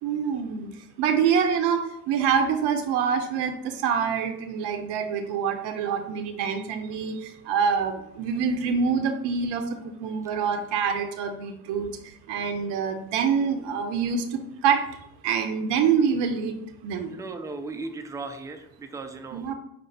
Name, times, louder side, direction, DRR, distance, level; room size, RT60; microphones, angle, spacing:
voice 1, 0.0-14.8 15.2-16.6 16.8-17.2 19.3-19.5, right 6 dB, 65° right, 6 dB, 0.6 m, -26 dB
voice 2, 17.1-19.5, right 3 dB, 10° right, 7 dB, 0.3 m, -37 dB
4.9 x 2.0 x 3.9 m, 0.82 s
hypercardioid pair, 45°, 45 cm